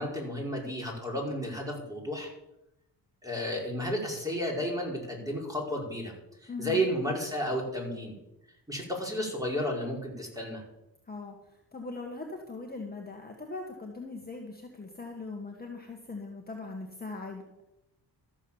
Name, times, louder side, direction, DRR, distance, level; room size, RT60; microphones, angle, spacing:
voice 1, 0.0-2.3 3.2-6.1 6.4-8.2 8.7-10.6, equal, 10° right, -1 dB, 5.2 m, -32 dB
voice 2, 6.5-6.9 11.1-17.5, left 3 dB, 20° left, 1 dB, 1.8 m, -40 dB
14.0 x 7.5 x 7.3 m, 0.90 s
cardioid pair, 70°, 43 cm